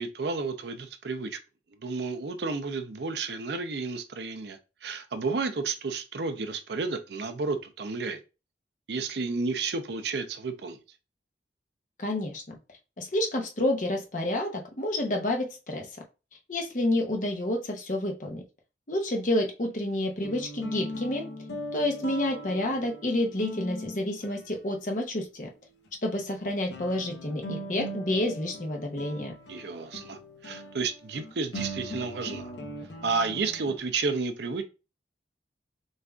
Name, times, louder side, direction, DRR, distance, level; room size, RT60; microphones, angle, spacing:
voice 1, 0.0-1.4 1.8-8.2 8.9-10.8 29.5-32.5 33.0-34.6, right 4 dB, 70° right, 0.6 m, -31 dB
voice 2, 12.0-12.6 13.0-15.9 16.5-18.4 18.9-21.3 21.7-25.5 26.0-29.3, left 1 dB, 45° left, 0.8 m, -29 dB
sound 1, 19.9-25.2 25.8-25.9 26.7-33.8, equal, 85° left, 0.8 m, -40 dB
6.3 x 2.5 x 2.3 m
head